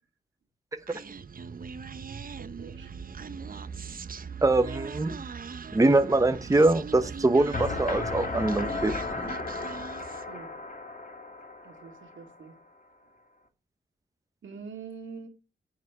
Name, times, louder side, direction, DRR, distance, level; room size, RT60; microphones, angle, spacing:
Human voice, 0.9-10.3, right 5 dB, 45° right, 0.7 m, -40 dB
voice 1, 2.4-2.9 10.3-10.6 11.6-12.5 14.4-15.3, right 5 dB, 75° right, 2.2 m, -44 dB
voice 2, 4.4-5.2 5.7-8.9, right 2 dB, 15° right, 0.8 m, -23 dB
sound 1, 7.5-12.5, left 3 dB, 40° left, 2.0 m, -35 dB
9.7 x 7.6 x 4.8 m
cardioid pair, 70°, 20 cm